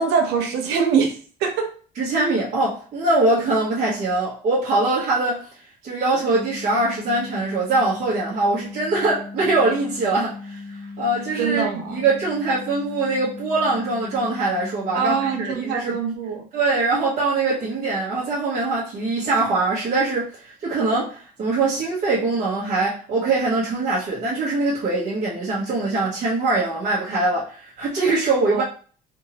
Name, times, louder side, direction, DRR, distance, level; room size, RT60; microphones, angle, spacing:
voice 1, 0.0-1.7 11.4-12.0 14.9-16.4 28.5-28.6, right 6 dB, 90° right, 0.9 m, -23 dB
voice 2, 1.9-5.5 5.8-10.6 11.0-16.0 16.5-28.6, right 2 dB, 50° right, 1.3 m, -22 dB
sound 1, 6.3-15.5, left 3 dB, 85° left, 0.6 m, -38 dB
3.6 x 2.7 x 3.0 m
cardioid pair, 110°, 17 cm